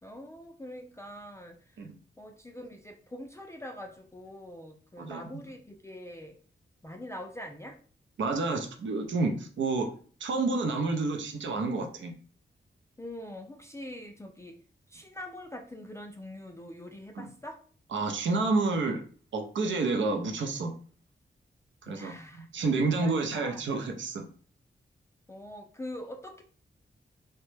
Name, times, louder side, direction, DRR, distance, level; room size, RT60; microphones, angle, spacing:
voice 1, 0.0-1.8 2.2-6.4 6.8-7.8 13.0-14.5 14.9-17.6 21.9-22.5 23.0-23.7 25.3-26.4, left 1 dB, 15° left, 3 dB, 0.3 m, -43 dB
voice 2, 8.2-9.9 10.2-12.1 17.1-17.3 17.9-19.0 19.3-20.7 21.8-24.2, right 3 dB, 80° right, 4 dB, 0.5 m, -29 dB
3.0 x 2.1 x 3.2 m, 0.43 s
wide cardioid pair, 90°, 19 cm